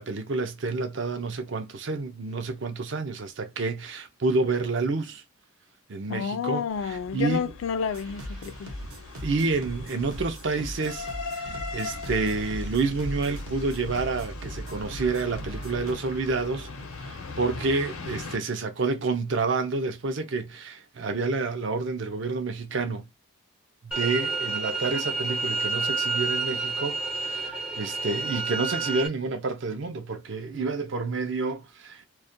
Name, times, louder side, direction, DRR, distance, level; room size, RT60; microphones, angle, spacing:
voice 1, 0.0-5.2 5.9-7.5 9.2-11.1 11.3-16.7 17.0-23.1 24.0-32.1, right 3 dB, 60° right, 0.5 m, -29 dB
voice 2, 6.1-8.7, left 7 dB, 65° left, 0.3 m, -30 dB
sound 1, 6.7-18.4, left 2 dB, 85° left, 0.7 m, -39 dB
sound 2, 7.9-15.9, equal, 85° right, 0.9 m, -40 dB
sound 3, 23.9-29.1, right 4 dB, 5° right, 0.4 m, -29 dB
2.3 x 2.1 x 2.5 m
head